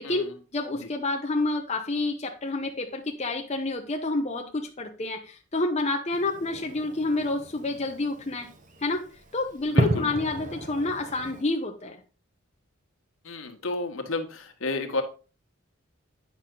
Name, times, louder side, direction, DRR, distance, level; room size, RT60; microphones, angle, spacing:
voice 1, 0.0-8.5 8.8-9.1 9.3-12.0, left 2 dB, 30° left, 3 dB, 0.8 m, -29 dB
Fireworks, 6.1-11.4, right 1 dB, 40° right, 1.1 m, -32 dB
voice 2, 9.7-10.1 13.2-15.0, left 2 dB, 70° left, 4 dB, 1.4 m, -31 dB
9.3 x 6.0 x 3.8 m, 0.34 s
head